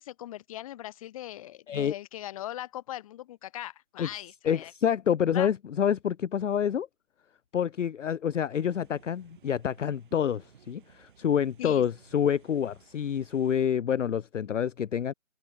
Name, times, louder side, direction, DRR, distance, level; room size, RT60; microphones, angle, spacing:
voice 1, 0.0-4.7 5.3-5.5 11.6-11.8, left 13 dB, 25° left, 4.7 m, -40 dB
voice 2, 4.4-6.9 7.5-15.1, left 8 dB, 65° left, 0.6 m, -27 dB
sound 1, 8.6-13.7, right 8 dB, 40° right, 6.8 m, -59 dB
figure-of-eight pair, 155°, 40 cm